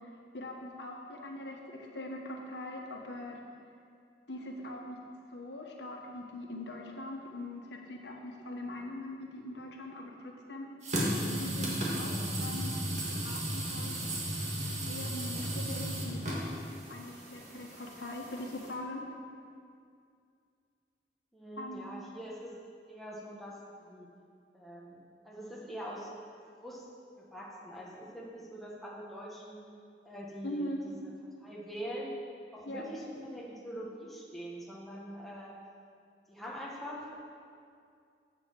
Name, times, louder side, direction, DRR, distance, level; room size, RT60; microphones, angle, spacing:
voice 1, 0.3-3.4 4.3-5.0 5.3-10.7 11.3-12.8 13.1-13.9 14.9-16.6 16.9-19.1 21.6-21.8 30.4-30.8 32.6-32.8, left 1 dB, 80° left, 1 dB, 1.4 m, -42 dB
sound 1, 10.8-18.7, right 1 dB, 40° right, 1.7 m, -35 dB
voice 2, 21.3-22.5 22.9-24.1 24.5-26.1 26.6-26.8 27.3-29.6 30.0-30.9 31.4-32.1 32.5-35.6 36.3-37.2, equal, ahead, -5 dB, 1.4 m, -43 dB
8.2 x 6.8 x 7.6 m, 2.3 s
head